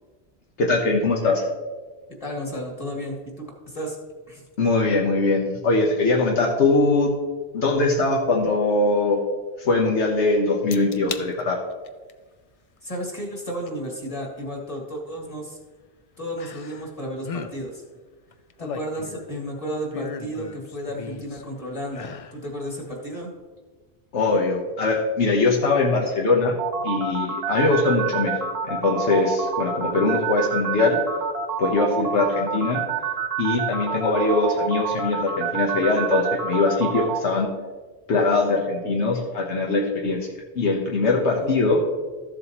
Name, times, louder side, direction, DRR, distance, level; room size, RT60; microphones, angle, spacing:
voice 1, 0.6-1.4 4.6-7.2 7.5-9.2 9.6-11.6 24.1-26.5 26.8-28.4 28.6-31.0 31.6-32.8 33.4-37.5 38.1-40.2 40.5-41.8, left 3 dB, 80° left, -1 dB, 1.3 m, -21 dB
voice 2, 2.2-4.0 4.3-4.4 12.8-15.6 16.2-17.8 18.6-23.3 41.4-41.6, equal, 30° left, -1 dB, 2.0 m, -33 dB
sound 1, 10.7-11.3 11.7-12.1 13.7-13.8 16.4-16.9 17.2-17.5 18.3-19.4 19.9-21.4 21.9-22.4 22.8-22.9, left 5 dB, 50° left, 0.4 m, -36 dB
sound 2, 26.6-37.2, right 6 dB, 65° right, 1.2 m, -27 dB
13.5 x 7.5 x 3.0 m, 1.3 s
omnidirectional pair, 1.1 m